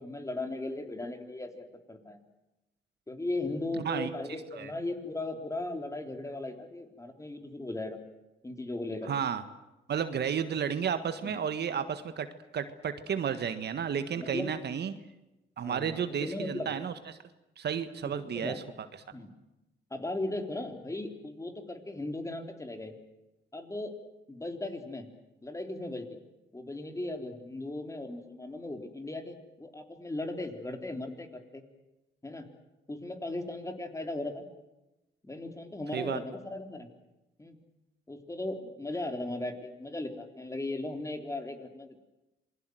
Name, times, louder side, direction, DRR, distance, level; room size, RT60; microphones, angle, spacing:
voice 1, 0.0-2.2 3.1-8.0 8.4-9.1 11.2-11.3 14.2-14.5 15.6-16.8 18.3-18.6 19.1-19.3 19.9-22.9 23.5-23.9 24.3-25.1 25.4-26.1 26.5-31.6 32.2-32.5 32.9-34.5 35.2-36.9 37.4-37.6 38.1-42.0, left 2 dB, 15° left, 5 dB, 3.6 m, -37 dB
voice 2, 3.8-4.1 4.5-4.7 9.1-9.4 9.9-12.3 12.5-14.9 15.6-17.2 17.6-18.5 35.9-36.2, right 7 dB, 55° right, 10 dB, 1.6 m, -32 dB
27.5 x 21.5 x 7.9 m, 0.97 s
cardioid pair, 90°, 20 cm